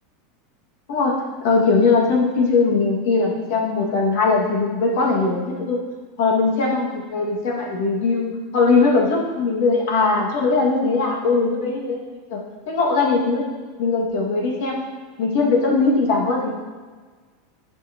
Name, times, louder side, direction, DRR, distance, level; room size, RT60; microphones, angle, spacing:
voice 1, 0.9-5.8 6.2-8.3 8.5-13.4 13.8-14.8 15.2-16.5, left 4 dB, 70° left, -2 dB, 2.0 m, -20 dB
10.5 x 5.7 x 2.9 m, 1.5 s
supercardioid pair, 135°, 0 cm